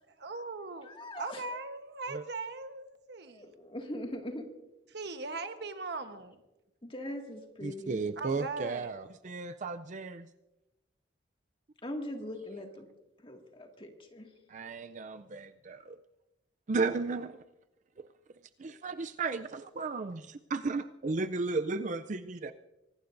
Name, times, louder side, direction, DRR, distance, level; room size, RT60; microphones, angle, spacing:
voice 1, 0.2-0.9 1.2-3.4 4.9-6.4 8.2-8.9, right 3 dB, 60° right, 8 dB, 1.2 m, -39 dB
voice 2, 0.8-1.6 3.3-4.5 6.8-8.0 11.8-12.9 13.2-14.3, left 1 dB, 30° left, 2 dB, 2.1 m, -41 dB
voice 3, 7.6-10.3 14.5-16.0 16.7-17.4 18.6-22.5, right 4 dB, 40° right, 10 dB, 0.5 m, -34 dB
24.5 x 18.0 x 2.6 m, 1.0 s
head